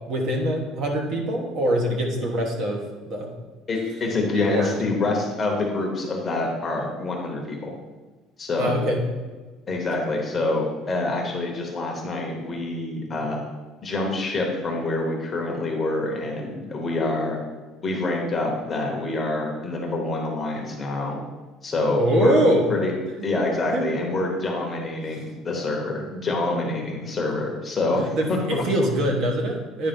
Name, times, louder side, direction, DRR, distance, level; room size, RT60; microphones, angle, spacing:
voice 1, 0.1-3.3 4.3-4.8 8.6-9.0 22.0-22.6 23.7-23.9 27.2-27.3 28.2-29.9, equal, 40° right, 1 dB, 1.2 m, -23 dB
voice 2, 3.7-7.7 8.4-8.8 9.7-13.4 13.8-17.4 17.8-21.2 21.6-22.4 22.7-22.9 23.2-28.6, left 2 dB, 20° left, 0 dB, 1.0 m, -26 dB
9.7 x 3.3 x 5.3 m, 1.3 s
cardioid pair, 180°, 0 cm